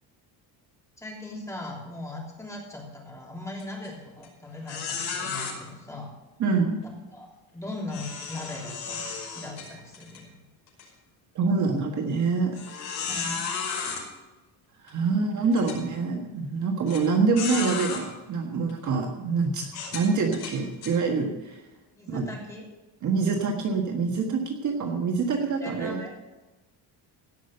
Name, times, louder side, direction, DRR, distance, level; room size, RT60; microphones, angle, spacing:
voice 1, 1.0-6.1 6.8-7.3 7.5-10.4 13.0-13.5 13.9-14.0 21.9-22.7 25.6-26.1, left 2 dB, 5° left, -3 dB, 3.2 m, -39 dB
sound 1, 3.6-3.9 4.2-4.3 4.7-5.5 7.9-10.2 10.7-10.8 11.5-11.6 12.5-14.0 14.9-15.0 15.5-15.8 16.9-17.0 17.4-18.0 18.7-18.9 19.7-20.9, left 6 dB, 60° left, 5.6 m, -33 dB
voice 2, 6.4-6.8 11.3-12.6 13.1-13.3 14.8-21.6 22.1-22.3 23.0-26.0, right 4 dB, 40° right, 2 dB, 1.5 m, -26 dB
17.0 x 6.2 x 7.8 m, 1.1 s
cardioid pair, 160°, 43 cm